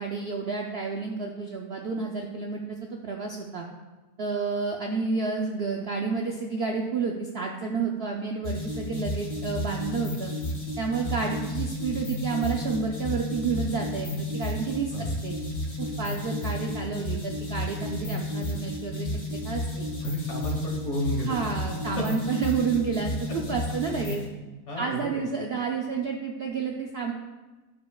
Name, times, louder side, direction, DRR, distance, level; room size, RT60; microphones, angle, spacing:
voice 1, 0.0-3.7 4.2-10.3 10.8-15.3 15.8-19.9 21.2-24.2 24.8-27.1, right 5 dB, 85° right, 1 dB, 0.5 m, -30 dB
sound 1, 8.4-24.3, left 1 dB, 65° left, 2.3 m, -32 dB
voice 2, 20.0-21.4 22.0-22.1 24.7-25.2, left 1 dB, 45° left, -1 dB, 1.5 m, -32 dB
11.5 x 5.1 x 2.3 m, 1.2 s
omnidirectional pair, 1.7 m